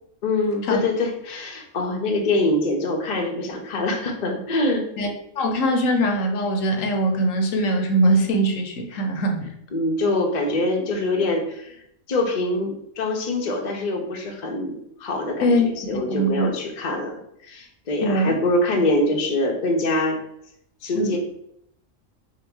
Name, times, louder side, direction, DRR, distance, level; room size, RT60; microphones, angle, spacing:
voice 1, 0.2-4.8 9.7-11.8 12.1-15.6 15.9-20.2 20.8-21.2, left 2 dB, 45° left, 1 dB, 0.6 m, -24 dB
voice 2, 5.4-9.4 15.4-16.5 18.0-18.3 21.0-21.2, right 1 dB, 75° left, 3 dB, 1.0 m, -22 dB
3.8 x 2.1 x 4.5 m, 0.76 s
omnidirectional pair, 1.4 m